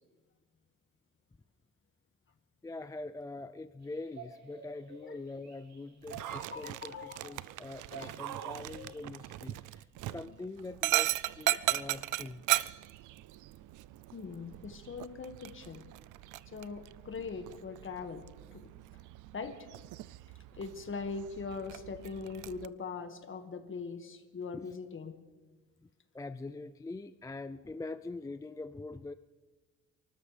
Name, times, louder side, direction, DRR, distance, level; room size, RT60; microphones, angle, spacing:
voice 1, 2.6-12.6 24.5-24.7 25.8-25.9 26.1-29.1, left 3 dB, 10° left, 11 dB, 0.4 m, -44 dB
sound 1, 3.8-7.6 7.9-9.1, right 2 dB, 60° right, 3.0 m, -51 dB
Dog, 6.0-22.7, right 16 dB, 80° right, 0.5 m, -38 dB
voice 2, 6.3-7.4 8.0-8.1 14.1-15.8 16.5-18.3 18.5-18.7 19.3-19.7 20.5-25.1, left 4 dB, 40° left, 7 dB, 1.8 m, -41 dB
29.5 x 13.0 x 3.3 m, 1.2 s
cardioid pair, 90°, 30 cm